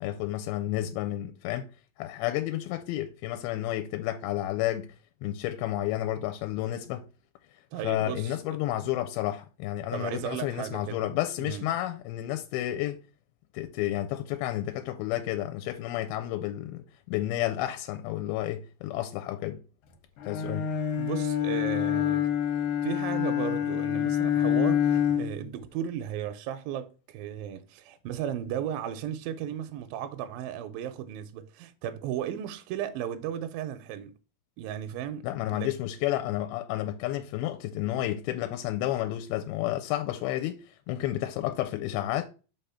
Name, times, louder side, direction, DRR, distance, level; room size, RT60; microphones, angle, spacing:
voice 1, 0.0-1.7 2.0-5.0 5.2-7.1 7.8-13.0 13.5-19.6 20.2-20.7 35.2-42.3, left 13 dB, 90° left, 2.5 m, -31 dB
voice 2, 7.7-8.6 9.9-11.0 11.4-11.7 21.0-22.3 22.8-34.1 34.6-35.3 35.5-35.7, right 10 dB, 80° right, 2.1 m, -35 dB
Bowed string instrument, 20.2-25.5, left 9 dB, 70° left, 2.4 m, -27 dB
5.4 x 3.6 x 5.6 m
omnidirectional pair, 4.3 m